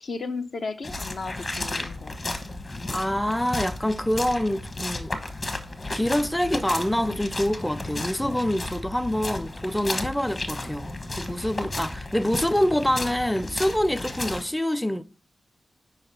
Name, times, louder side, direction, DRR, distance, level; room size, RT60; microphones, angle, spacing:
voice 1, 0.0-2.2, left 4 dB, 65° left, 0.5 m, -34 dB
sound 1, 0.8-14.4, left 2 dB, 45° left, 1.2 m, -33 dB
voice 2, 2.9-5.2 5.9-15.0, left 1 dB, 5° left, 0.4 m, -26 dB
4.9 x 3.9 x 5.5 m
supercardioid pair, 45°, 0 cm